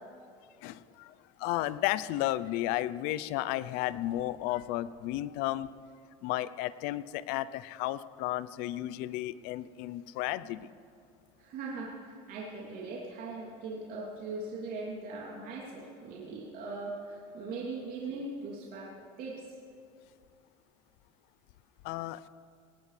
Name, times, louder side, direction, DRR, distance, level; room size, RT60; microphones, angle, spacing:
voice 1, 0.6-5.7 6.2-10.7 21.8-22.3, left 15 dB, 70° left, 17 dB, 0.6 m, -33 dB
voice 2, 11.4-18.9 19.2-19.4, right 3 dB, 60° right, -4 dB, 3.0 m, -40 dB
19.5 x 19.0 x 3.3 m, 2.3 s
supercardioid pair, 100°, 17 cm